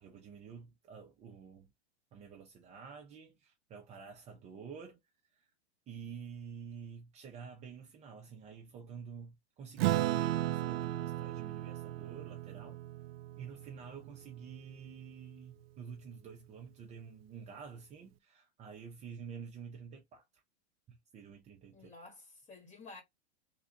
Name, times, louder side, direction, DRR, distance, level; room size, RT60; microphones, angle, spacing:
voice 1, 0.0-1.7 2.1-5.0 5.3-5.5 5.9-12.8 13.4-20.4 20.9-21.9, right 6 dB, 20° right, 0.6 m, -49 dB
Acoustic guitar / Strum, 9.8-14.6, right 14 dB, 65° right, 0.5 m, -35 dB
voice 2, 21.7-23.0, left 3 dB, 20° left, 1.9 m, -52 dB
3.6 x 2.4 x 3.8 m
hypercardioid pair, 125°, 33 cm